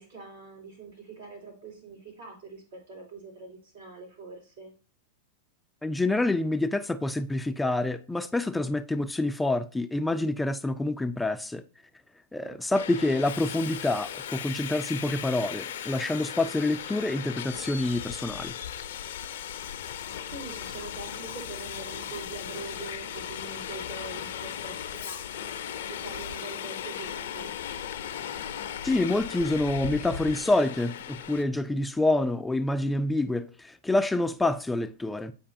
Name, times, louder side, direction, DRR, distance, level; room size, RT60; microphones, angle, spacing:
voice 1, 0.0-4.7 12.4-12.6 20.1-25.6 25.9-27.5, right 4 dB, 75° right, 3.4 m, -44 dB
voice 2, 5.8-11.6 12.3-18.5 28.8-35.3, left 2 dB, 5° left, 0.3 m, -27 dB
Subway metro underground, 12.7-31.4, left 9 dB, 65° left, 0.5 m, -37 dB
8.4 x 5.0 x 2.7 m
hypercardioid pair, 95°, 0 cm